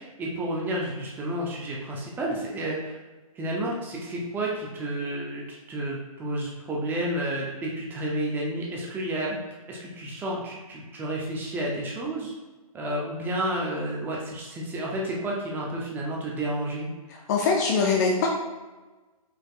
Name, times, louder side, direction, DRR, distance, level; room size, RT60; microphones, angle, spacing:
voice 1, 0.0-3.0 3.4-9.4 9.7-12.3 12.7-16.9, right 1 dB, 10° right, -3 dB, 0.6 m, -31 dB
voice 2, 17.1-18.3, left 4 dB, 30° left, 0 dB, 0.4 m, -23 dB
5.0 x 4.1 x 2.4 m, 1.2 s
hypercardioid pair, 145°, 19 cm